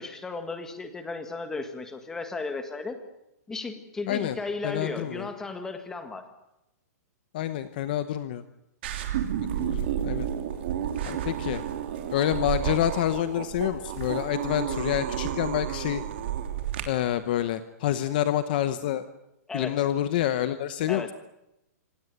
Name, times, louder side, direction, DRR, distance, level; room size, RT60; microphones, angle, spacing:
voice 1, 0.0-3.0 3.5-6.3 19.5-19.8 20.9-21.1, left 3 dB, 5° left, 7 dB, 1.7 m, -35 dB
voice 2, 4.6-5.3 7.3-8.4 9.6-10.3 11.0-11.6 12.1-16.0 16.9-19.0 19.5-21.1, left 11 dB, 35° left, 12 dB, 0.9 m, -27 dB
sound 1, 8.8-16.8, right 10 dB, 40° right, 3.2 m, -31 dB
26.5 x 18.0 x 9.3 m, 0.88 s
hypercardioid pair, 175°, 9 cm